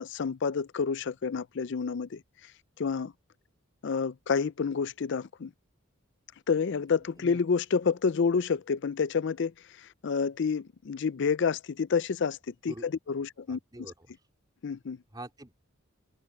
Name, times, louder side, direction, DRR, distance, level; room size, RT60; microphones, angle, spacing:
voice 1, 0.0-2.2 2.8-3.1 3.8-5.5 6.5-13.6 14.6-15.0, left 5 dB, 55° left, 0.4 m, -29 dB
voice 2, 13.5-14.1 15.1-15.5, right 1 dB, 20° right, 4.3 m, -44 dB
head